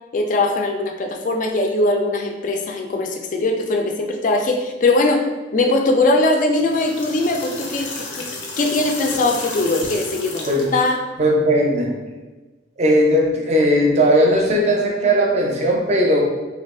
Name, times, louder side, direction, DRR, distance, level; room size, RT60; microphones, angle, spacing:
voice 1, 0.1-5.3 5.5-8.3 8.6-11.0, left 2 dB, 45° left, 4 dB, 0.3 m, -20 dB
sound 1, 6.5-10.9, left 3 dB, 85° left, 0.6 m, -32 dB
voice 2, 11.2-11.9 12.8-16.2, equal, 35° right, 0 dB, 0.5 m, -17 dB
2.9 x 2.3 x 3.5 m, 1.2 s
head